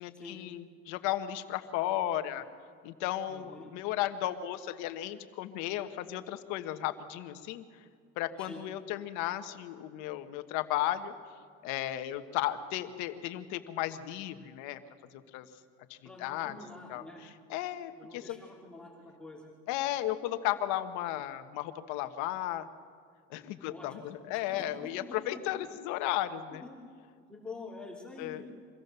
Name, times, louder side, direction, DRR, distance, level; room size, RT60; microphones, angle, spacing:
voice 1, 0.0-2.4 2.8-7.6 8.2-11.1 11.6-14.8 15.3-15.5 15.9-16.5 16.9-17.0 17.5-18.4 19.7-22.7 23.3-26.6 28.2-28.4, left 13 dB, 65° left, 9 dB, 1.3 m, -34 dB
voice 2, 3.3-3.7 8.4-8.6 16.0-17.2 17.9-19.4 23.7-23.9 24.3-25.7 26.5-26.7 27.3-28.5, left 3 dB, 5° left, -4 dB, 3.1 m, -47 dB
24.5 x 16.0 x 6.8 m, 2.1 s
cardioid pair, 135°, 31 cm